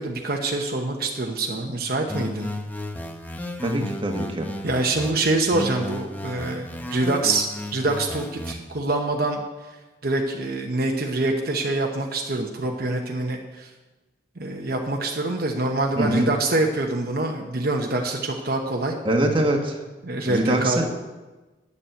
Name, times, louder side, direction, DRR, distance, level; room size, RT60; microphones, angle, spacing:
voice 1, 0.0-2.5 4.6-9.4 10.0-13.7 14.4-19.0 20.0-20.9, right 2 dB, 55° right, 1 dB, 1.0 m, -25 dB
sound 1, 2.1-5.1 5.5-8.5, left 1 dB, 10° left, 0.7 m, -33 dB
voice 2, 3.6-4.5 15.9-16.3 19.0-19.8 20.3-20.9, right 1 dB, 30° right, 2 dB, 1.4 m, -23 dB
9.7 x 7.0 x 7.6 m, 1.2 s
head